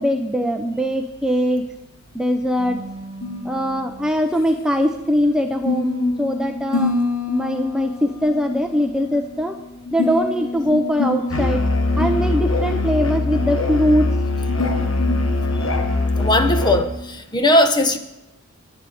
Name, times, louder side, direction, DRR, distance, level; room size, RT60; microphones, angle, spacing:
voice 1, 0.0-1.6 2.1-2.8 3.4-6.9 7.3-9.6 9.9-11.6 12.0-14.1, equal, 5° right, 0.6 m, -21 dB
sound 1, 1.0-17.1, left 2 dB, 45° left, 3.0 m, -29 dB
Musical instrument, 11.3-16.9, left 2 dB, 65° left, 1.5 m, -21 dB
voice 2, 16.2-18.0, left 1 dB, 20° left, 0.9 m, -18 dB
10.5 x 7.9 x 7.7 m
head